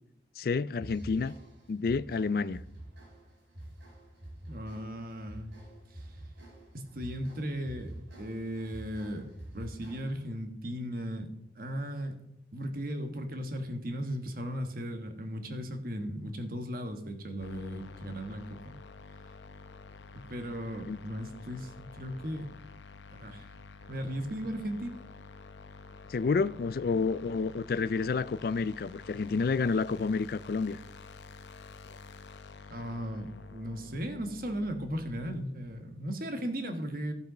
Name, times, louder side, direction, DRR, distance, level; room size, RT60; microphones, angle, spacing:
voice 1, 0.4-1.3 1.7-2.6 20.9-21.0 26.1-30.8, left 4 dB, 55° left, 0.3 m, -29 dB
sound 1, 0.7-10.3, right 1 dB, 85° right, 4.0 m, -47 dB
voice 2, 4.5-5.5 5.9-6.1 6.7-9.3 9.5-11.3 11.5-12.2 12.5-18.7 20.1-22.5 23.1-23.5 23.9-25.0 32.7-37.1, equal, 50° right, 1.3 m, -36 dB
sound 2, 17.4-35.4, left 4 dB, 75° left, 0.7 m, -49 dB
14.5 x 5.4 x 5.1 m
head